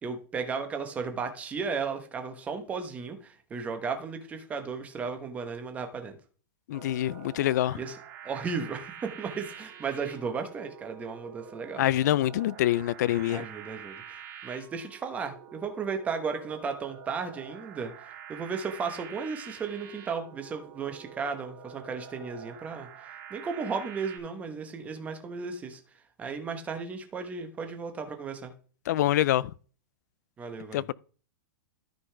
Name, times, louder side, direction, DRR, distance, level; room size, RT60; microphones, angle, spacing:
voice 1, 0.0-6.2 7.8-8.0 8.2-11.9 13.3-25.8 26.2-28.5 30.4-30.8, right 5 dB, 15° right, 1.1 m, -35 dB
voice 2, 6.7-7.8 11.8-13.5 28.9-29.5 30.7-30.9, left 13 dB, 55° left, 0.4 m, -25 dB
sound 1, 6.7-24.2, right 8 dB, 40° right, 2.3 m, -47 dB
13.0 x 5.4 x 3.4 m
supercardioid pair, 165°, 11 cm